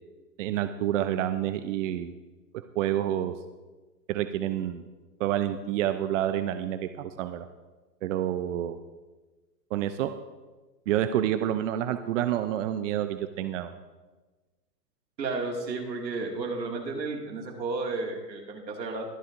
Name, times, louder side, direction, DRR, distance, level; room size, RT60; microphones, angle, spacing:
voice 1, 0.4-2.1 2.8-3.3 4.1-4.9 5.2-7.5 8.0-8.8 9.7-10.1 10.9-13.7, right 11 dB, 50° right, 10 dB, 0.6 m, -28 dB
voice 2, 15.2-19.0, right 3 dB, 85° right, 1 dB, 2.3 m, -32 dB
23.0 x 7.6 x 2.6 m, 1.2 s
hypercardioid pair, 120°, 49 cm